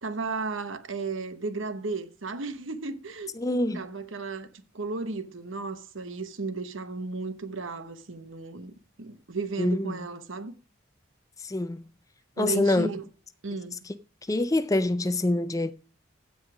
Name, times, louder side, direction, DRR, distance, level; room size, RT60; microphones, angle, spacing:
voice 1, 0.0-3.5 3.7-4.5 4.7-8.7 9.0-10.5 12.4-13.0 13.4-13.8, right 3 dB, 70° right, 1.1 m, -34 dB
voice 2, 3.4-3.8 9.6-10.0 11.4-11.9 12.4-12.9 14.3-15.7, left 2 dB, 15° left, 0.4 m, -25 dB
15.5 x 5.5 x 4.8 m
head